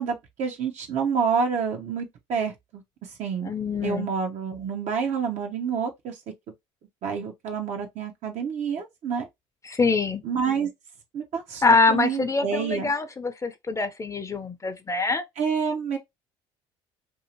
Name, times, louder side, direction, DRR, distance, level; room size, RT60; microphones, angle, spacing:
voice 1, 0.0-2.8 3.2-3.5 3.8-6.2 7.0-9.3 10.2-10.7 11.1-11.6 11.9-12.9 15.4-16.0, right 6 dB, 60° right, 0.7 m, -28 dB
voice 2, 3.4-4.1 9.7-10.2 11.6-15.2, left 4 dB, 25° left, 0.5 m, -24 dB
2.7 x 2.4 x 2.8 m
supercardioid pair, 70°, 14 cm